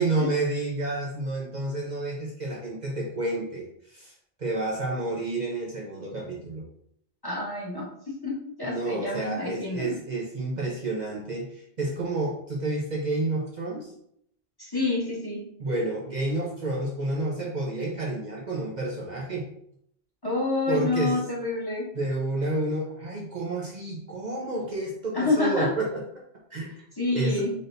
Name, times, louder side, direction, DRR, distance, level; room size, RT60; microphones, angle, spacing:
voice 1, 0.0-6.6 8.6-13.9 15.6-19.5 20.7-21.2 21.9-25.9 26.5-26.8 27.1-27.4, right 2 dB, 50° right, -3 dB, 0.8 m, -30 dB
voice 2, 7.2-9.9 14.6-15.4 20.2-21.9 25.1-25.7 27.0-27.5, left 2 dB, 25° left, -5 dB, 1.0 m, -28 dB
4.0 x 3.5 x 2.6 m, 0.71 s
omnidirectional pair, 1.1 m